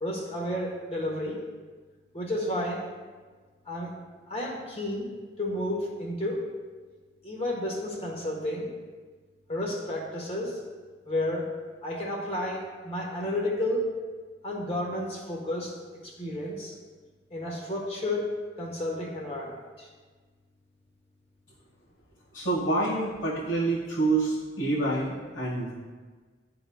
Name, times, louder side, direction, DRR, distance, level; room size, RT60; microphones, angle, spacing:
voice 1, 0.0-1.4 2.1-2.9 3.7-3.9 4.3-5.1 5.4-6.5 7.2-8.7 9.5-10.6 11.0-11.5 11.8-13.9 14.4-15.8 16.0-16.7 17.3-19.9, left 1 dB, 35° left, -1 dB, 1.3 m, -31 dB
voice 2, 22.3-25.7, right 2 dB, 75° left, -11 dB, 1.7 m, -27 dB
11.5 x 3.9 x 2.3 m, 1.4 s
head